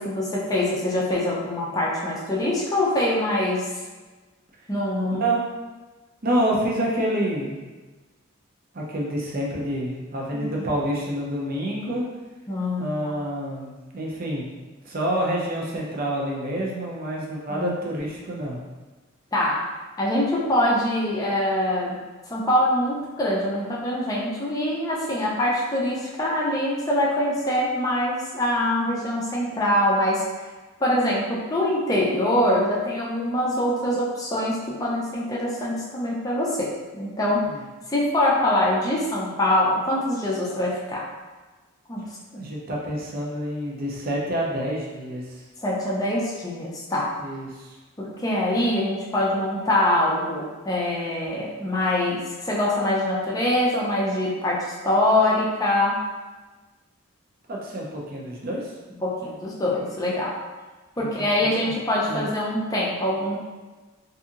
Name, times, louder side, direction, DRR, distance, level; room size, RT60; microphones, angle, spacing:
voice 1, 0.0-3.7 4.7-5.3 10.3-10.6 12.5-13.1 17.5-17.7 19.3-19.6 20.0-22.0 22.3-30.5 30.8-37.5 37.9-41.1 41.9-42.4 45.6-47.1 48.0-56.0 59.0-60.4 61.0-63.4, left 1 dB, 15° left, -5 dB, 0.5 m, -24 dB
voice 2, 6.2-7.6 8.7-12.1 12.8-14.4 14.8-18.6 37.5-37.6 42.4-45.2 47.2-47.8 57.5-58.7 61.0-61.7 62.0-62.3, right 1 dB, 45° right, -3 dB, 0.5 m, -28 dB
2.7 x 2.7 x 2.4 m, 1.3 s
head